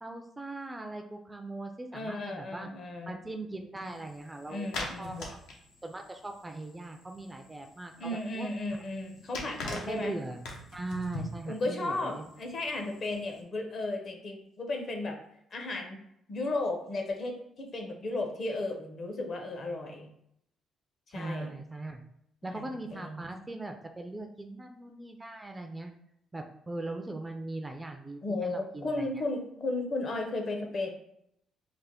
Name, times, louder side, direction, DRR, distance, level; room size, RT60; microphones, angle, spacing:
voice 1, 0.0-2.7 3.1-5.3 5.8-8.5 9.6-10.5 10.7-12.2 21.1-22.0 22.4-25.9 26.3-29.1, right 2 dB, 15° right, 5 dB, 0.3 m, -40 dB
voice 2, 1.9-3.2 4.5-5.3 8.0-10.1 11.5-15.2 15.5-16.0 16.3-20.1 21.1-21.5 22.5-23.2 28.2-30.9, left 2 dB, 45° left, 3 dB, 0.7 m, -34 dB
sound 1, 3.8-13.4, left 2 dB, 80° left, 0.7 m, -44 dB
3.3 x 2.1 x 3.6 m, 0.75 s
cardioid pair, 110°, 0 cm